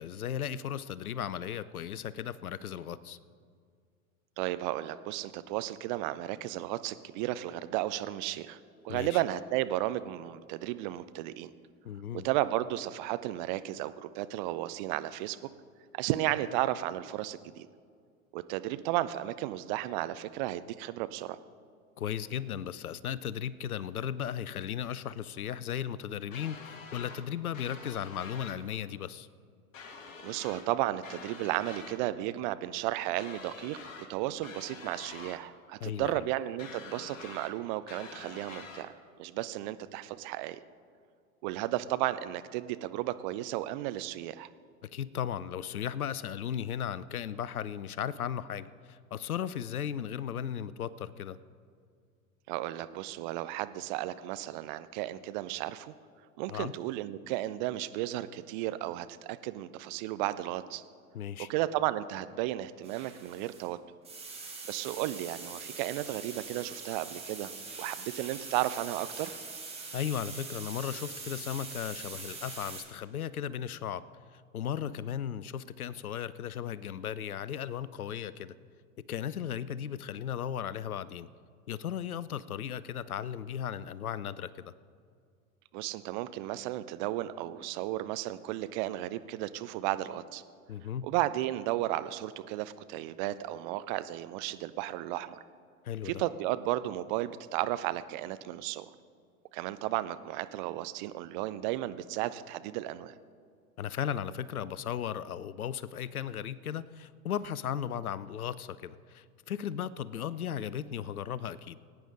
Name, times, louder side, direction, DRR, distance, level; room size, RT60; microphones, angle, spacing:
voice 1, 0.0-3.2 8.9-9.2 11.8-12.3 22.0-29.3 35.8-36.3 44.8-51.4 56.5-56.7 61.1-61.5 69.9-74.0 74.3-78.5 79.1-81.3 81.7-84.7 90.7-91.1 95.8-96.2 103.8-111.8, left 9 dB, 80° left, 18 dB, 0.6 m, -36 dB
voice 2, 4.4-8.6 8.8-11.5 12.2-15.4 15.9-17.7 18.3-21.4 30.2-33.8 34.1-38.9 39.2-40.6 41.4-44.5 52.5-55.9 56.4-60.8 61.5-63.8 64.7-67.5 67.8-69.5 85.7-90.4 91.0-95.4 96.0-98.9 99.5-103.1, right 15 dB, 35° right, 14 dB, 0.5 m, -34 dB
sound 1, 26.3-27.2 27.5-28.6 29.7-30.7 31.0-32.0 33.2-34.1 34.4-35.4 36.6-37.5 37.9-38.9, left 4 dB, 60° left, 1.8 m, -47 dB
sound 2, 62.8-63.7 64.0-72.8, right 4 dB, 15° right, 2.2 m, -43 dB
20.0 x 9.3 x 3.8 m, 2.2 s
figure-of-eight pair, 95°, 43 cm